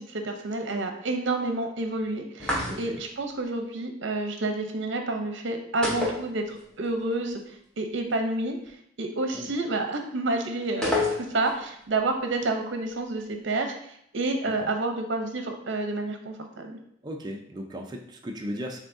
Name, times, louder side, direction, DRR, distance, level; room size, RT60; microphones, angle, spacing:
voice 1, 0.0-7.4 7.8-8.6 9.0-13.8 14.1-16.8, right 2 dB, 70° right, 5 dB, 0.7 m, -29 dB
sound 1, 2.4-3.1 5.8-6.9 7.1-7.2 10.8-11.6, left 2 dB, 5° left, 0.9 m, -28 dB
voice 2, 2.7-3.0 9.3-9.5 14.5-14.7 17.0-18.8, equal, 20° right, 1 dB, 0.4 m, -36 dB
7.2 x 2.7 x 2.6 m, 0.71 s
head